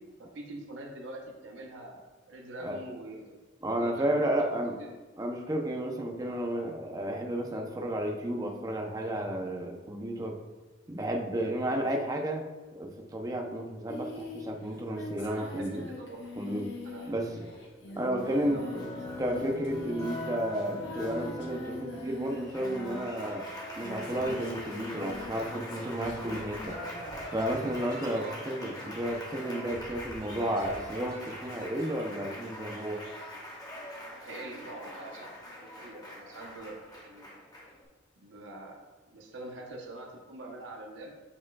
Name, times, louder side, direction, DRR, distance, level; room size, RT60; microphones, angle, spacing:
voice 1, 0.0-2.0 2.3-3.4 3.8-4.6 6.2-6.5 15.2-16.2 16.8-18.8 28.1-28.4 34.2-35.3 35.6-37.3 38.2-38.8 39.1-41.1, right 2 dB, 75° right, 0 dB, 0.9 m, -44 dB
voice 2, 3.6-4.7 5.2-10.4 10.9-12.4 12.7-15.9 16.4-16.7 17.1-17.5 18.0-18.6 19.2-23.4 23.8-26.8 27.3-33.0, right 1 dB, 20° right, 2 dB, 0.6 m, -32 dB
Singing, 13.9-23.2 23.7-26.7, left 2 dB, 70° left, 1.1 m, -43 dB
Applause, 18.2-37.8, left 1 dB, 20° left, 1.0 m, -43 dB
sound 1, 23.9-32.1, right 1 dB, 50° right, 1.2 m, -50 dB
8.5 x 4.9 x 2.3 m, 1.2 s
head